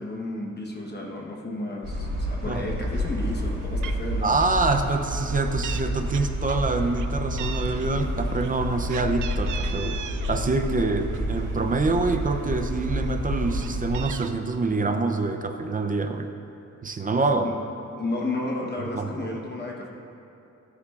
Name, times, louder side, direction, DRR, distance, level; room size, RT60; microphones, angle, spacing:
voice 1, 0.0-4.4 18.0-19.9, left 2 dB, 35° left, -1 dB, 1.1 m, -32 dB
sound 1, 1.8-14.0, left 1 dB, 45° right, 2.2 m, -29 dB
Meow, 3.5-3.6 3.8-4.1 4.4-4.6 4.9-5.8 6.1-7.1 7.4-10.4 10.8-11.9 12.4-12.5 12.8-14.3, right 9 dB, 80° right, 0.5 m, -39 dB
voice 2, 4.2-10.0 10.3-16.3 16.8-17.5 18.9-19.1, right 3 dB, 25° right, 6 dB, 0.5 m, -26 dB
16.5 x 9.7 x 2.4 m, 2.7 s
wide cardioid pair, 170°, 31 cm